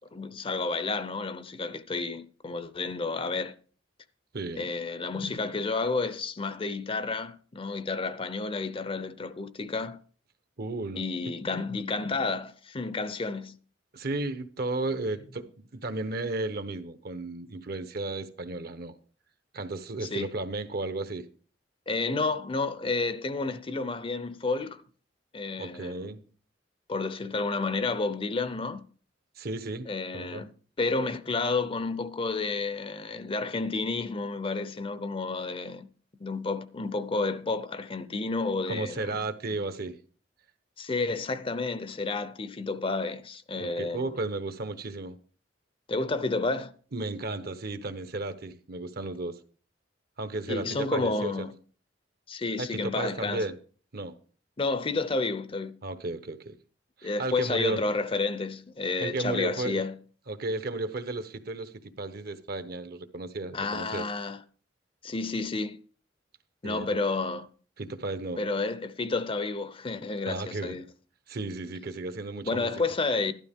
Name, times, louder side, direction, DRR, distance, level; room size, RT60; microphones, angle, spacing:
voice 1, 0.1-3.5 4.5-10.0 11.0-13.6 20.0-20.3 21.9-24.8 25.3-26.1 26.9-28.8 29.9-35.9 36.2-39.2 40.8-44.2 45.9-46.7 50.5-51.6 52.3-53.5 54.6-55.7 57.0-60.0 63.5-64.4 65.0-65.8 66.6-67.5 68.4-70.9 72.4-73.3, left 3 dB, 30° left, 0.6 m, -31 dB
voice 2, 4.3-4.7 10.6-11.0 13.9-18.9 19.5-21.3 25.6-26.2 29.4-29.9 30.1-30.5 38.7-40.0 43.6-45.2 46.9-49.4 50.2-51.3 52.6-53.6 53.9-54.1 55.8-56.5 57.0-57.8 59.0-59.8 60.3-64.0 66.6-67.0 67.8-68.4 70.3-70.8 71.3-72.7, right 2 dB, 55° right, 1.0 m, -34 dB
12.5 x 12.0 x 3.6 m
head